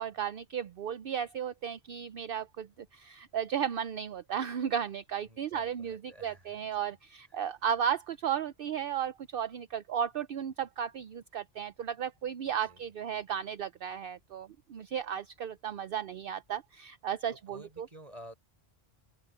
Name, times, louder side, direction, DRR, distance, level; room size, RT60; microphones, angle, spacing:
voice 1, 0.0-17.9, right 8 dB, 60° right, 0.8 m, -34 dB
voice 2, 5.3-6.9 7.3-7.4 12.5-12.8 17.3-18.3, right 1 dB, 35° right, 5.5 m, -52 dB
omnidirectional pair, 1.1 m